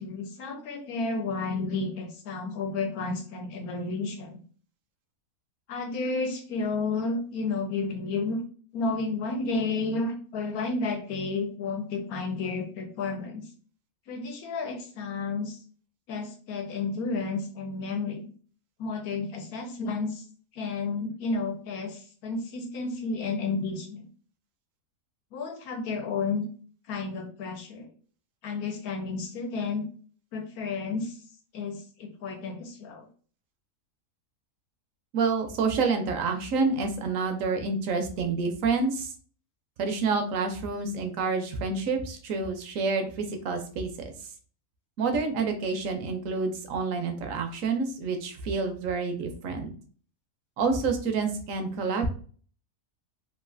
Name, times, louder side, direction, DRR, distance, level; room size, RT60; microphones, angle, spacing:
voice 1, 0.0-4.4 5.7-8.4 8.7-13.4 14.1-15.6 16.1-18.2 18.8-20.2 20.5-24.1 25.3-26.5 26.9-27.9 28.4-29.8 30.3-31.1 31.5-33.1, left 3 dB, 75° left, 4 dB, 1.2 m, -31 dB
voice 2, 35.1-39.1 39.8-43.9 45.0-49.7 50.6-52.1, right 4 dB, 70° right, 6 dB, 0.9 m, -28 dB
3.0 x 2.4 x 2.5 m, 0.43 s
omnidirectional pair, 1.6 m